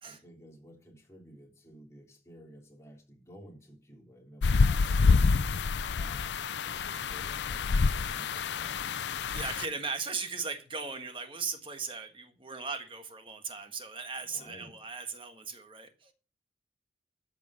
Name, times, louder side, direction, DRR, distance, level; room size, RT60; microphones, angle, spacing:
voice 1, 0.0-5.3 5.9-9.1 9.4-9.6 14.3-14.7, equal, 15° left, 3.2 m, -53 dB
sound 1, 4.4-9.7, left 4 dB, 85° left, 0.5 m, -27 dB
voice 2, 9.3-16.1, right 4 dB, 30° right, 1.5 m, -38 dB
13.5 x 5.2 x 6.3 m
head